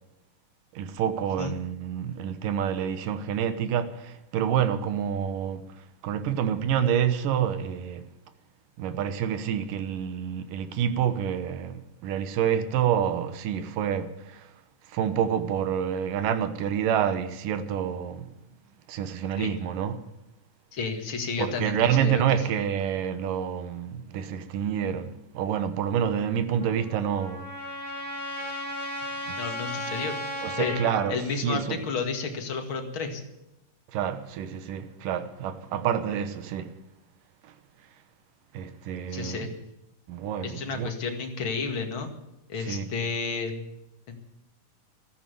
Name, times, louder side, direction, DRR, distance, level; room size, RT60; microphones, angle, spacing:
voice 1, 0.7-8.1 8.8-14.5 14.8-18.4 18.9-20.0 21.4-27.5 29.3-29.5 30.4-31.8 33.9-36.8 37.4-37.5 38.5-39.5 40.1-40.9 42.6-42.9, right 8 dB, 85° right, 2.7 m, -28 dB
voice 2, 20.7-22.2 29.4-30.8 31.1-33.2 39.1-39.5 40.4-42.1 42.5-43.5 44.1-44.2, left 5 dB, 40° left, 2.6 m, -31 dB
Trumpet, 26.6-31.1, left 1 dB, 25° left, 7.8 m, -35 dB
14.5 x 13.5 x 6.9 m
omnidirectional pair, 3.7 m